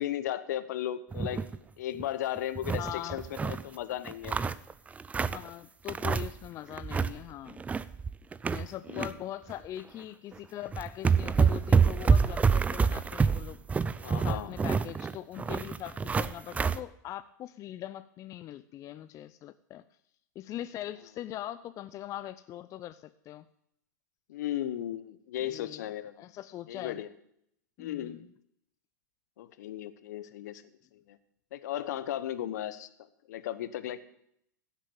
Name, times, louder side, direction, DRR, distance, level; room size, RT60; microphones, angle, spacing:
voice 1, 0.0-1.4 1.8-4.4 8.9-9.1 14.0-14.5 24.3-26.1 26.7-27.1 27.8-28.2 29.4-30.6 31.1-31.2 31.5-32.9 33.3-34.0, left 12 dB, 60° left, 13 dB, 1.0 m, -35 dB
sound 1, 1.1-1.6 1.9-2.0 2.4-3.6 4.0-5.5 5.9-6.5 6.7-7.2 7.5-9.1 9.5-9.7 10.4-10.5 10.7-16.8, right 5 dB, 15° right, 0.5 m, -27 dB
voice 2, 2.8-3.2 5.2-7.6 8.4-13.6 14.2-19.8 20.4-23.5 25.4-25.9 26.2-27.0 27.8-28.3, left 13 dB, 30° left, 13 dB, 0.5 m, -41 dB
15.5 x 7.3 x 7.0 m, 0.73 s
hypercardioid pair, 95°, 10 cm